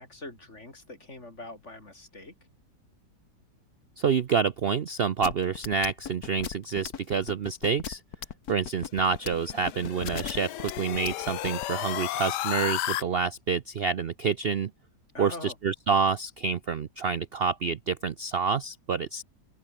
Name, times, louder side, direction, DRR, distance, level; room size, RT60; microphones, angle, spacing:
voice 1, 0.0-2.3 15.1-15.6, left 2 dB, 35° left, 5.4 m, -43 dB
voice 2, 4.0-8.0 8.5-14.7 15.2-19.2, right 5 dB, 70° right, 0.5 m, -28 dB
sound 1, 5.2-11.7, left 8 dB, 55° left, 1.7 m, -36 dB
sound 2, 9.1-13.0, left 15 dB, 70° left, 1.2 m, -33 dB
open air
omnidirectional pair, 2.0 m